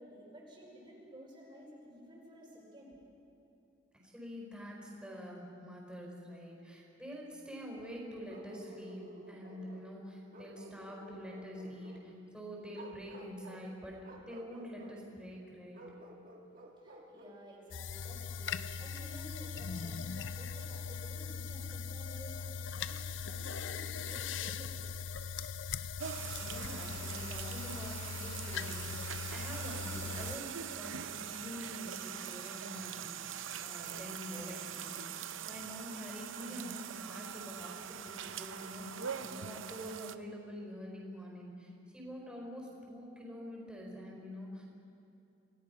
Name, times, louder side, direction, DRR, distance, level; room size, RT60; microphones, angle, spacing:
voice 1, 0.0-3.0 16.4-26.4, equal, 25° right, -5 dB, 4.6 m, -53 dB
voice 2, 4.0-15.8 26.4-35.0 35.5-44.7, equal, 5° right, -2 dB, 4.8 m, -46 dB
Bark, 8.3-9.9 10.3-12.1 12.7-13.7 14.0-15.0 15.7-17.4, right 1 dB, 45° right, 1.7 m, -52 dB
sound 1, 17.7-30.4, left 6 dB, 70° left, 0.5 m, -40 dB
sound 2, 26.0-40.2, right 8 dB, 80° right, 0.7 m, -43 dB
28.0 x 18.0 x 5.6 m, 2.7 s
head